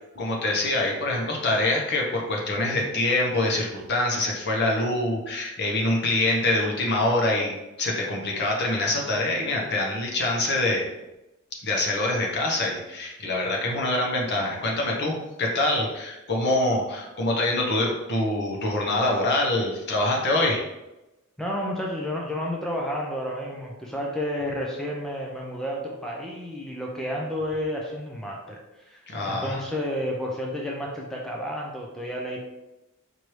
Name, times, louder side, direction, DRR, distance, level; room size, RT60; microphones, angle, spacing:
voice 1, 0.2-10.8 11.6-20.6 29.1-29.6, left 2 dB, 50° left, -1 dB, 0.9 m, -25 dB
voice 2, 21.4-32.4, equal, ahead, -2 dB, 0.4 m, -31 dB
4.6 x 2.6 x 3.1 m, 0.97 s
head